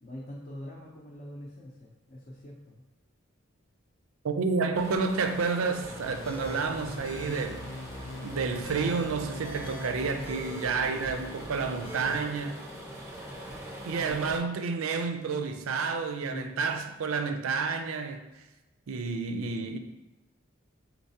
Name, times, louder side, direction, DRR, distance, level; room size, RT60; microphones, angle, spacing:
voice 1, 0.0-2.8 16.3-16.7, equal, 40° left, 0.6 m, -43 dB
voice 2, 4.2-7.6 8.2-12.6 13.9-18.3 18.9-19.8, right 4 dB, 80° right, 0.4 m, -30 dB
sound 1, 4.7-14.4, right 1 dB, 15° right, 0.6 m, -43 dB
sound 2, 5.8-12.2, left 1 dB, 80° left, 0.7 m, -41 dB
4.5 x 3.9 x 2.8 m
head